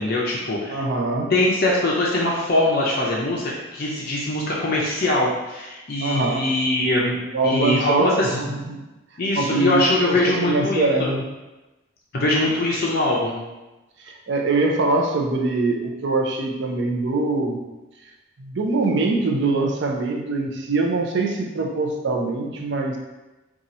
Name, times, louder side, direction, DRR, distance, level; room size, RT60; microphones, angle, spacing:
voice 1, 0.0-0.8 1.3-7.2 7.4-8.4 9.2-11.1 12.1-13.4, left 1 dB, 50° left, -4 dB, 0.5 m, -22 dB
voice 2, 0.7-1.3 6.0-6.5 7.3-8.8 9.3-11.2 14.0-17.6 18.4-23.0, right 3 dB, 60° right, 2 dB, 0.5 m, -23 dB
2.7 x 2.4 x 4.1 m, 1.1 s
head